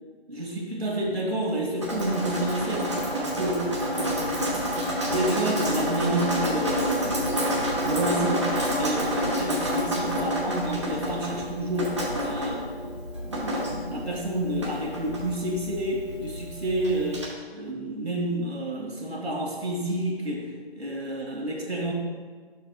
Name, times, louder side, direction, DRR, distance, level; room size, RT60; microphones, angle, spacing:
voice 1, 0.3-7.2 7.8-13.0 13.2-20.5 20.8-21.9, right 1 dB, 80° right, -2 dB, 1.8 m, -30 dB
Drip, 1.8-17.3, equal, 30° right, 0.9 m, -29 dB
9.1 x 6.5 x 2.3 m, 1.5 s
figure-of-eight pair, 165°, 31 cm